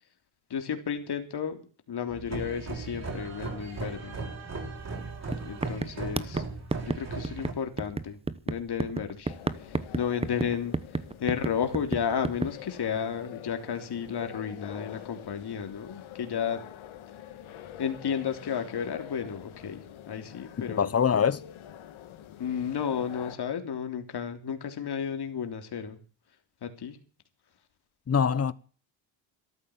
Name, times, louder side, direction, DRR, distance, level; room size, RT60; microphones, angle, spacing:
voice 1, 0.5-1.6 1.9-4.2 5.4-6.4 6.8-8.2 8.4-9.3 9.6-10.7 11.2-16.6 17.8-20.9 22.4-26.0 26.6-27.0, left 7 dB, 50° left, 3.4 m, -32 dB
sound 1, 2.1-7.5, right 3 dB, 35° right, 6.6 m, -37 dB
sound 2, 4.9-5.0 5.3-12.5, right 3 dB, 10° right, 0.9 m, -32 dB
Brusio femminile mono, 9.2-23.4, left 11 dB, 75° left, 2.2 m, -46 dB
voice 2, 20.6-21.4 28.1-28.5, left 7 dB, 30° left, 1.1 m, -24 dB
14.0 x 12.5 x 7.3 m
cardioid pair, 90°, 48 cm